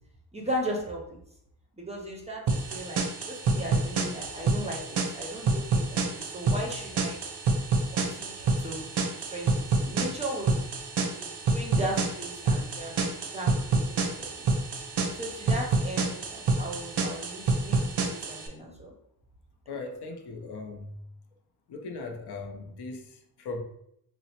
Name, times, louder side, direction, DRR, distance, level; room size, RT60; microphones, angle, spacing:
voice 1, 0.3-1.2 1.7-7.2 7.9-10.6 11.1-14.4 15.1-18.9, right 1 dB, 15° right, -2 dB, 0.4 m, -37 dB
sound 1, 2.5-18.5, right 3 dB, 85° right, 0.6 m, -28 dB
voice 2, 19.7-21.0 21.7-23.6, left 3 dB, 75° left, 3 dB, 0.6 m, -38 dB
4.0 x 2.0 x 2.8 m, 0.75 s
wide cardioid pair, 165°, 39 cm